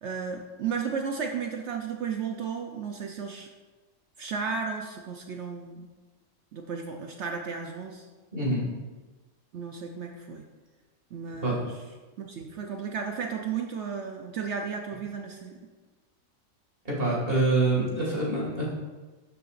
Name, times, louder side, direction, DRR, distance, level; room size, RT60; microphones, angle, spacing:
voice 1, 0.0-3.5 4.2-5.9 6.5-8.1 9.5-10.4 11.1-11.7 12.2-15.6, right 6 dB, 60° right, 3 dB, 0.9 m, -34 dB
voice 2, 8.3-8.6 11.4-11.6 16.8-18.6, right 2 dB, 40° right, -5 dB, 2.4 m, -25 dB
12.0 x 6.9 x 2.5 m, 1.3 s
omnidirectional pair, 1.5 m